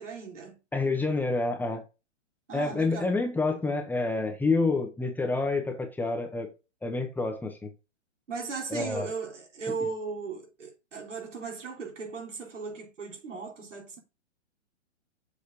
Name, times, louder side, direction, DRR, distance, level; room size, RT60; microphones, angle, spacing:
voice 1, 0.0-0.6 2.5-3.1 8.3-14.0, right 4 dB, 85° right, 3.6 m, -37 dB
voice 2, 0.7-1.8 2.5-6.5 6.8-7.7 8.7-9.1, left 3 dB, 5° left, 1.0 m, -28 dB
6.9 x 4.5 x 5.4 m
hypercardioid pair, 135°, 36 cm